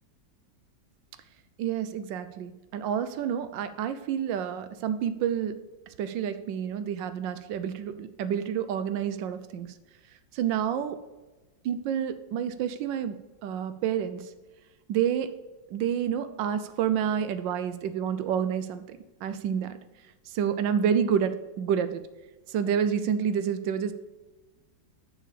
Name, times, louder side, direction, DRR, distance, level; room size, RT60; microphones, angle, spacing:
voice 1, 1.6-5.6 6.0-9.7 10.3-11.0 11.6-14.3 14.9-15.3 15.7-19.8 20.3-22.0 22.5-23.9, right 8 dB, 85° right, 11 dB, 1.3 m, -29 dB
6.9 x 5.7 x 6.7 m, 1.2 s
omnidirectional pair, 2.0 m